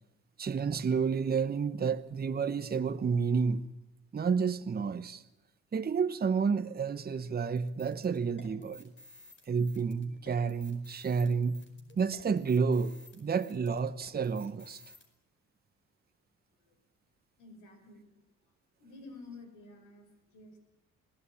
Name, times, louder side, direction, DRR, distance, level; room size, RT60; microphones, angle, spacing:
voice 1, 0.4-3.6 4.1-5.2 5.7-8.9 9.5-11.6 12.0-14.8, right 5 dB, 30° right, 1.0 m, -30 dB
sound 1, 7.6-15.1, left 2 dB, 40° left, 5.0 m, -55 dB
voice 2, 17.4-18.1 18.8-20.6, left 3 dB, 85° left, 5.7 m, -51 dB
22.0 x 17.0 x 10.0 m
cardioid pair, 90°, 30 cm